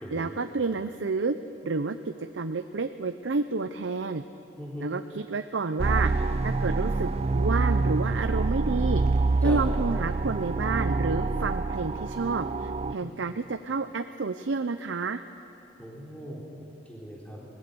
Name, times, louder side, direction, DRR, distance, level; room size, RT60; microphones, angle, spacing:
voice 1, 0.1-1.4 1.6-4.2 4.8-9.0 9.4-15.2, right 4 dB, 85° right, 9 dB, 0.6 m, -30 dB
voice 2, 4.6-4.9 9.4-9.6 13.0-13.3 15.8-16.4 16.9-17.5, equal, 10° left, -4 dB, 3.9 m, -39 dB
sound 1, 5.8-12.9, right 3 dB, 35° right, 0.4 m, -26 dB
24.5 x 19.5 x 7.0 m, 2.7 s
head